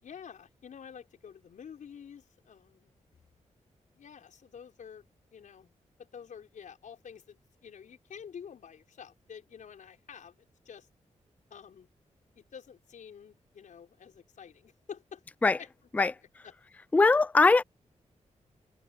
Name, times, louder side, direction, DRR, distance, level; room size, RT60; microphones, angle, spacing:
voice 1, 0.0-2.9 3.9-5.0 5.3-5.7 6.0-10.9 11.5-11.9 12.4-15.2 15.6-16.1 16.4-16.5 17.1-17.2, left 7 dB, 85° left, 5.7 m, -49 dB
voice 2, 16.9-17.6, left 3 dB, 10° left, 0.3 m, -21 dB
wide cardioid pair, 140°, 13 cm